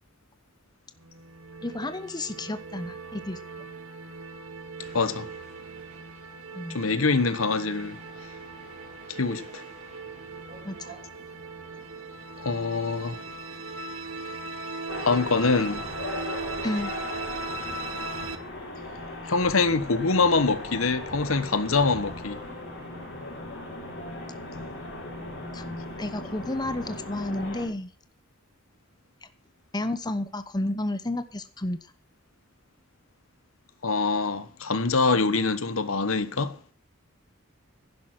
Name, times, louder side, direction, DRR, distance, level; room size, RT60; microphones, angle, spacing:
sound 1, 1.0-18.4, right 3 dB, 90° right, 1.6 m, -39 dB
voice 1, 1.6-3.4 6.5-6.8 10.6-10.9 16.6-16.9 25.5-25.6 26.0-27.9 29.7-31.8, left 1 dB, 20° left, 0.9 m, -31 dB
sound 2, 4.8-23.4, right 1 dB, 35° right, 5.0 m, -53 dB
voice 2, 4.9-5.3 6.7-8.0 9.1-9.6 12.4-13.2 15.0-15.8 19.2-22.4 33.8-36.6, left 4 dB, 80° left, 1.2 m, -24 dB
sound 3, 14.9-27.7, left 1 dB, 60° left, 6.4 m, -38 dB
11.0 x 11.0 x 5.9 m
head